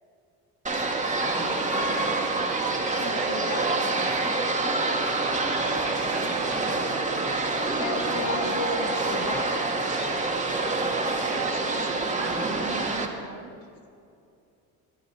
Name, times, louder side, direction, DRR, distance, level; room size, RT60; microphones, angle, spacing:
sound 1, 0.7-13.1, right 3 dB, 20° right, 1.2 m, -26 dB
voice 1, 1.4-2.6 3.0-5.3 5.6-6.5 11.2-13.5, right 7 dB, 85° right, 6 dB, 1.1 m, -41 dB
voice 2, 3.0-3.7 7.8-9.7, left 3 dB, 65° left, 3 dB, 1.7 m, -33 dB
11.0 x 9.5 x 4.7 m, 2.4 s
supercardioid pair, 90°, 38 cm